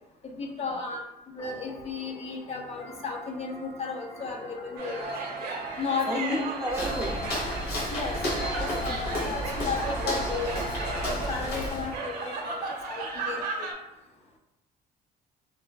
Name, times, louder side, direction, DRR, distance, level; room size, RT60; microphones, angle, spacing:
voice 1, 0.2-1.0 1.3-5.2 5.8-6.5 7.9-13.7, left 5 dB, 40° left, 1 dB, 0.5 m, -34 dB
sound 1, 1.4-12.7, equal, 60° left, 0.9 m, -46 dB
sound 2, 4.8-13.7, right 3 dB, 60° right, 0.6 m, -35 dB
voice 2, 6.1-7.3 8.7-9.0 9.3-9.5, right 1 dB, 15° right, 0 dB, 0.4 m, -34 dB
Walk footsteps, 6.7-12.0, left 1 dB, 90° left, 0.9 m, -32 dB
3.2 x 2.3 x 2.2 m, 0.93 s
cardioid pair, 110°, 17 cm